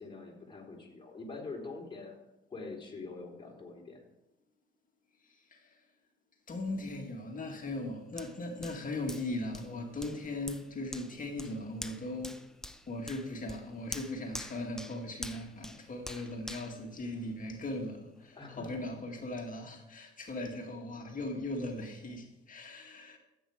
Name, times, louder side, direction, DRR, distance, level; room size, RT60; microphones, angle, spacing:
voice 1, 0.0-2.2 2.5-4.0 18.4-18.9, left 3 dB, 25° left, 3.6 m, -44 dB
voice 2, 5.2-5.8 6.5-12.4 12.9-23.2, left 2 dB, 40° left, 2.1 m, -39 dB
Hands, 8.2-17.7 18.2-18.3, left 1 dB, 5° left, 0.7 m, -47 dB
13.5 x 8.4 x 5.0 m
cardioid pair, 90°, 20 cm